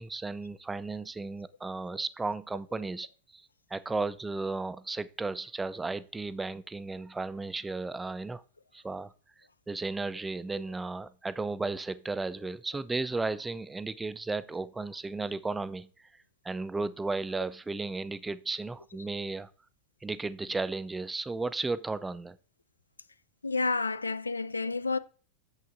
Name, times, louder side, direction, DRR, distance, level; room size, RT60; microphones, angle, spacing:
voice 1, 0.0-3.1 3.3-3.4 3.7-8.4 8.7-9.1 9.7-15.9 16.4-19.5 20.0-22.4, right 3 dB, 10° right, 0.4 m, -34 dB
voice 2, 23.4-25.0, left 3 dB, 80° left, 0.5 m, -30 dB
8.5 x 7.1 x 3.8 m
figure-of-eight pair, 90°, 0 cm